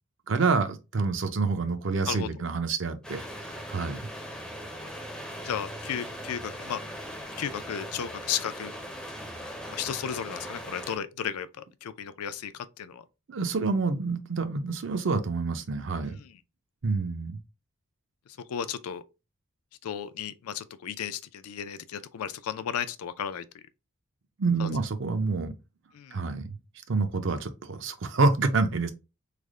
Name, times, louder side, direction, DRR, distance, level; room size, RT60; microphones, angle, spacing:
voice 1, 0.3-4.0 13.3-16.2 16.8-17.4 24.4-25.5 26.1-26.6 26.9-28.9, right 4 dB, 55° right, 0.5 m, -27 dB
sound 1, 3.0-11.0, equal, 5° left, 0.4 m, -40 dB
voice 2, 5.4-6.8 7.4-8.7 9.7-13.0 16.0-16.3 18.5-19.0 19.8-23.4 24.6-24.7 25.9-26.2, left 8 dB, 90° left, 0.4 m, -34 dB
3.3 x 2.1 x 3.6 m
head